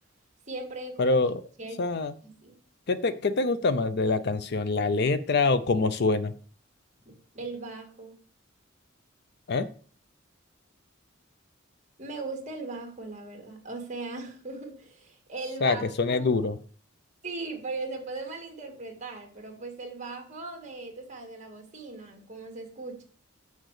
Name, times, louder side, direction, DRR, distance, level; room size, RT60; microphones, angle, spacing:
voice 1, 0.5-1.3 1.6-1.8 2.2-2.6 7.1-8.1 12.0-16.5 17.2-23.0, right 3 dB, 35° right, 2 dB, 1.9 m, -39 dB
voice 2, 1.0-1.4 1.8-2.1 2.9-6.3 9.5-9.7 15.6-16.6, left 3 dB, 55° left, 13 dB, 0.5 m, -25 dB
6.4 x 5.2 x 6.5 m, 0.43 s
head